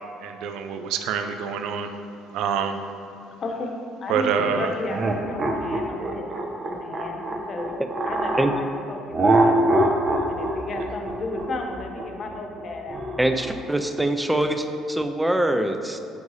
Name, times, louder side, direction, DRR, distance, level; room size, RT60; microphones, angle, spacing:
voice 1, 0.2-1.9 2.3-2.8 4.1-4.7, right 7 dB, 65° right, 7 dB, 0.4 m, -26 dB
voice 2, 3.4-6.3 6.7-7.8 8.0-9.6 10.3-13.1, left 2 dB, 45° left, 2 dB, 0.9 m, -33 dB
sound 1, 4.9-8.5 9.1-13.6, right 1 dB, 40° right, 0.7 m, -24 dB
voice 3, 13.2-16.0, right 1 dB, 10° right, 6 dB, 0.5 m, -23 dB
8.2 x 4.6 x 2.7 m, 2.6 s
hypercardioid pair, 55°, 0 cm